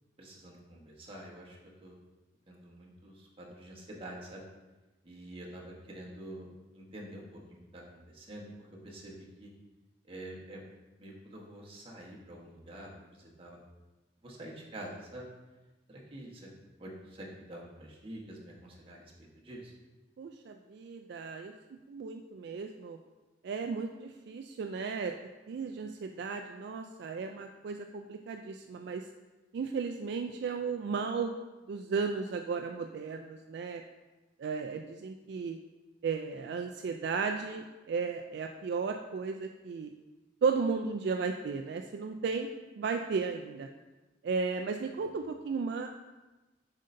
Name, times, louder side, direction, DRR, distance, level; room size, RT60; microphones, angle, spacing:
voice 1, 0.2-1.9 2.5-4.4 5.0-6.5 6.7-9.5 10.1-10.6 11.0-13.6 14.2-15.3 15.9-16.5 16.8-19.1 19.4-19.7, right 1 dB, 30° right, -3 dB, 1.1 m, -47 dB
voice 2, 20.2-21.5 21.9-23.0 23.4-25.1 25.5-29.0 29.5-31.3 31.7-33.8 34.4-35.6 36.0-39.9 40.4-42.5 42.8-43.7 44.2-45.9, right 5 dB, 60° right, 4 dB, 0.3 m, -34 dB
7.5 x 5.3 x 2.6 m, 1.1 s
head